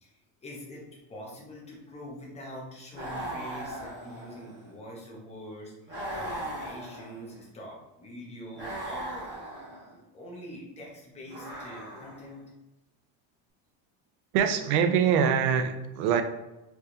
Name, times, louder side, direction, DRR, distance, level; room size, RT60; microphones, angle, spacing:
voice 1, 0.0-0.8 1.1-9.3 9.8-12.4, equal, 15° left, -3 dB, 0.8 m, -44 dB
sound 1, 2.9-4.7 5.9-7.4 8.5-9.9 11.3-12.4, right 1 dB, 25° right, 1.1 m, -38 dB
voice 2, 14.3-16.2, right 7 dB, 85° right, 7 dB, 0.6 m, -24 dB
4.6 x 2.7 x 2.5 m, 0.99 s
cardioid pair, 160°, 43 cm